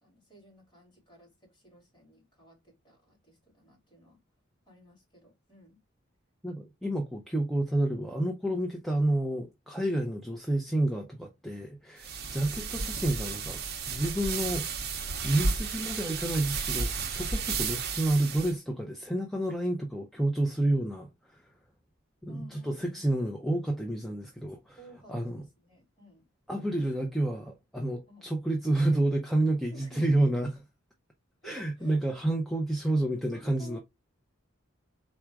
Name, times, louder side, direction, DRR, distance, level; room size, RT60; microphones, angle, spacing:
voice 1, 0.0-4.2 4.7-5.8 22.3-23.1 24.8-26.3 26.7-26.8 28.1-28.3 29.7-30.3 31.4-32.0 33.3-33.8, right 1 dB, 20° left, 2.4 m, -54 dB
voice 2, 6.4-14.7 15.2-21.4 22.2-24.8 25.1-25.4 26.5-30.5 31.4-33.8, right 1 dB, ahead, 0.5 m, -29 dB
sound 1, 12.0-18.5, right 4 dB, 50° right, 0.7 m, -33 dB
4.1 x 2.4 x 4.6 m
head